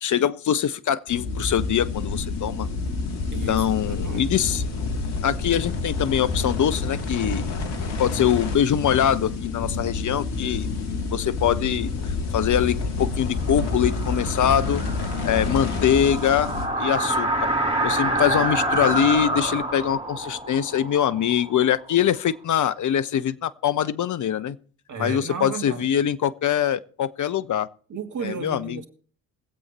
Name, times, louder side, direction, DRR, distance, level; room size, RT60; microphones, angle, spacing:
voice 1, 0.0-2.7 3.5-4.6 5.2-7.4 8.0-10.7 11.1-11.9 12.3-14.8 15.2-16.5 16.8-17.5 17.8-24.6 25.0-27.7 28.2-28.8, left 9 dB, 45° left, 0.9 m, -23 dB
sound 1, 1.1-16.7, left 3 dB, 65° left, 2.5 m, -28 dB
voice 2, 3.3-4.3 24.9-26.0 27.9-28.9, right 5 dB, 45° right, 2.7 m, -34 dB
sound 2, 13.5-22.2, right 1 dB, 15° right, 6.0 m, -27 dB
22.0 x 8.2 x 4.3 m
hypercardioid pair, 50°, 43 cm